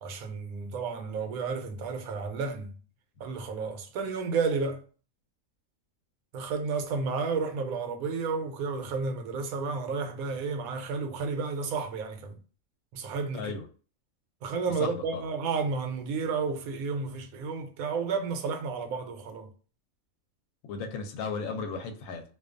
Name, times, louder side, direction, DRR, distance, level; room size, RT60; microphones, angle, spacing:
voice 1, 0.0-2.8 3.2-4.8 6.3-12.4 12.9-13.5 14.4-19.5, right 4 dB, 80° right, 1.0 m, -32 dB
voice 2, 13.3-13.7 14.8-15.2 20.6-22.2, left 4 dB, 75° left, 0.9 m, -35 dB
2.4 x 2.3 x 2.4 m
omnidirectional pair, 1.5 m